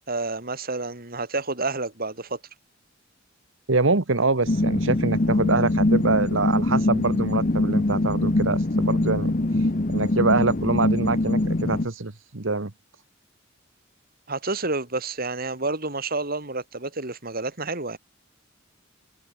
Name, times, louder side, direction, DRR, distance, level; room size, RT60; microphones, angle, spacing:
voice 1, 0.1-2.4 14.3-18.0, right 3 dB, 50° right, 3.7 m, -29 dB
voice 2, 3.7-9.3 9.6-12.7, right 3 dB, 70° right, 1.5 m, -25 dB
sound 1, 4.5-11.9, left 2 dB, 40° left, 1.0 m, -23 dB
head